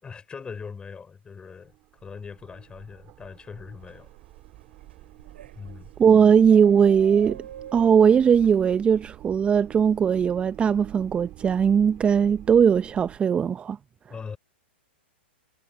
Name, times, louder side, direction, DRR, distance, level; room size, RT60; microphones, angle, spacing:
voice 1, 0.0-1.7 2.0-4.1 5.5-5.9 14.1-14.4, left 5 dB, 15° left, 4.5 m, -40 dB
sound 1, 1.3-13.2, right 17 dB, 35° right, 3.2 m, -47 dB
sound 2, 3.8-8.8, right 9 dB, 70° right, 7.0 m, -47 dB
voice 2, 6.0-7.4 7.7-13.8, right 7 dB, 20° right, 0.6 m, -19 dB
hypercardioid pair, 110°, 6 cm